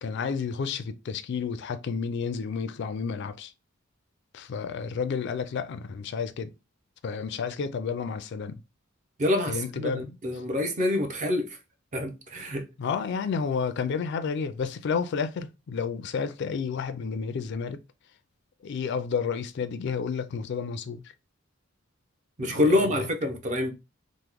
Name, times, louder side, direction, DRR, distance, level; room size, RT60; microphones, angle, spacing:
voice 1, 0.0-3.5 4.3-6.5 7.0-8.6 9.5-10.2 12.8-17.8 18.6-21.0 22.4-23.1, left 5 dB, 60° left, 0.3 m, -31 dB
voice 2, 9.2-11.6 11.9-12.6 22.4-23.7, left 1 dB, 40° right, 0.6 m, -26 dB
3.0 x 2.1 x 3.4 m
head